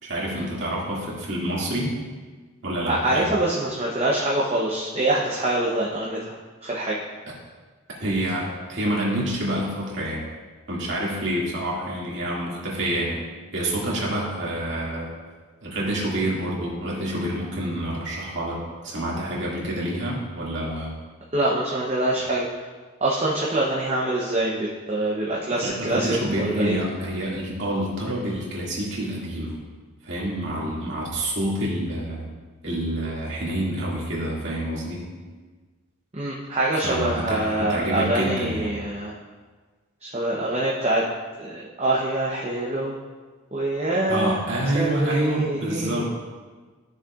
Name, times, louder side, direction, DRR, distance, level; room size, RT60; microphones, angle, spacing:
voice 1, 0.0-1.9 2.6-3.3 8.0-10.3 10.7-13.2 13.5-15.1 15.6-20.9 25.6-29.6 30.0-32.3 32.6-35.1 36.8-38.7 44.1-46.0, right 1 dB, 55° right, -5 dB, 2.2 m, -27 dB
voice 2, 2.9-7.0 21.3-22.7 23.0-26.2 26.5-26.8 36.1-39.1 40.0-41.1 41.4-43.0 43.5-44.4 44.7-46.0, right 1 dB, 30° right, -5 dB, 0.8 m, -25 dB
12.5 x 6.6 x 2.4 m, 1.4 s
head